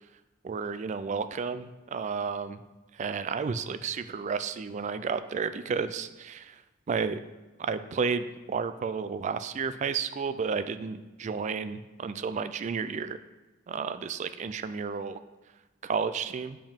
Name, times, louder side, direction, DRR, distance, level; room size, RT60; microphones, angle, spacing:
voice 1, 0.4-2.6 3.0-6.6 6.9-7.2 7.6-13.2 13.7-15.2 15.8-16.6, right 5 dB, 35° right, 12 dB, 0.3 m, -32 dB
6.8 x 5.3 x 3.6 m, 1.2 s
head